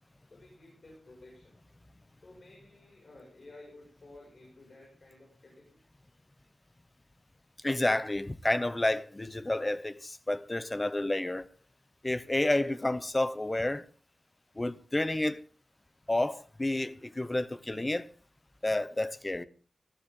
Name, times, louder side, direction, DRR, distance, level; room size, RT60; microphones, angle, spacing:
voice 1, 0.3-1.6 2.2-5.8, left 2 dB, 45° left, 6.3 m, -54 dB
voice 2, 7.6-11.5 12.0-13.9 14.6-15.4 16.1-18.1 18.6-19.4, left 1 dB, 20° left, 0.8 m, -30 dB
19.5 x 14.5 x 3.8 m
wide cardioid pair, 130°, 0 cm